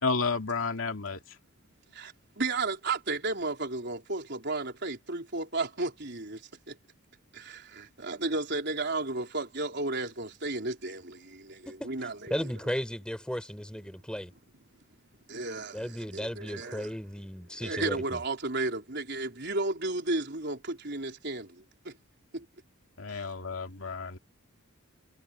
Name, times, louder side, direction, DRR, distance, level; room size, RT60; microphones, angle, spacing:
voice 1, 0.0-1.2 23.0-24.2, left 4 dB, 70° left, 2.4 m, -31 dB
voice 2, 1.9-6.4 6.7-6.8 7.3-12.3 15.3-16.9 17.6-21.9 22.3-22.5 23.1-23.3, right 2 dB, 55° right, 4.2 m, -33 dB
voice 3, 11.7-14.3 15.7-18.2, equal, 5° left, 7.0 m, -35 dB
head